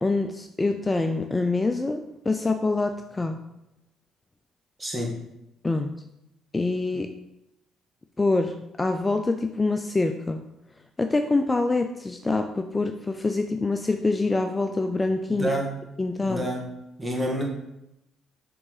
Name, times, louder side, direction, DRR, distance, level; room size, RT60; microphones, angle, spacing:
voice 1, 0.0-2.0 2.3-3.4 5.6-5.9 6.5-7.1 8.2-10.4 11.0-15.5 16.0-16.4, left 3 dB, 20° left, 6 dB, 0.4 m, -25 dB
voice 2, 4.8-5.2 15.3-15.8 16.2-16.7 17.0-17.4, equal, 15° right, -1 dB, 1.9 m, -28 dB
6.1 x 3.6 x 4.8 m, 0.86 s
hypercardioid pair, 60°, 0 cm